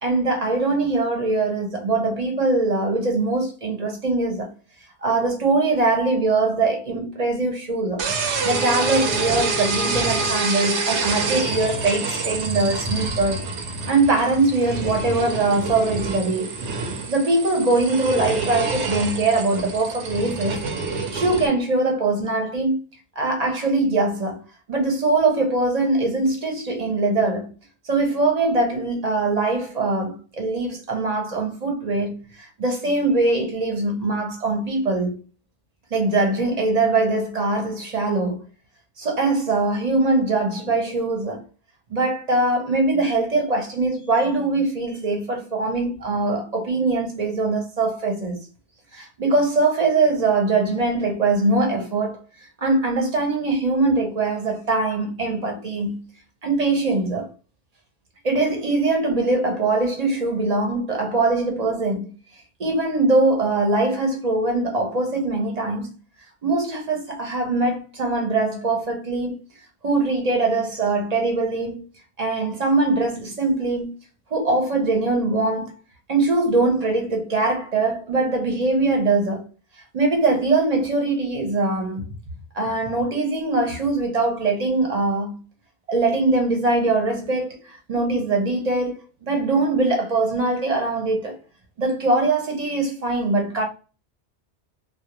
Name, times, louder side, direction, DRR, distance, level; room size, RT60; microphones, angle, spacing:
voice 1, 0.0-4.5 5.0-13.4 13.9-16.5 17.1-20.6 21.1-22.8 23.2-24.4 24.7-27.5 27.8-35.2 35.9-38.4 39.0-41.4 41.9-48.4 48.9-52.2 52.6-56.0 56.4-57.3 58.2-62.1 62.6-65.9 66.4-69.4 69.8-71.8 72.2-73.9 74.3-75.7 76.1-79.5 79.9-82.1 82.5-85.4 85.9-91.4 91.8-93.6, right 3 dB, 45° right, 0.6 m, -22 dB
sound 1, 8.0-21.5, right 3 dB, 80° right, 0.9 m, -27 dB
2.3 x 2.1 x 2.8 m
omnidirectional pair, 1.2 m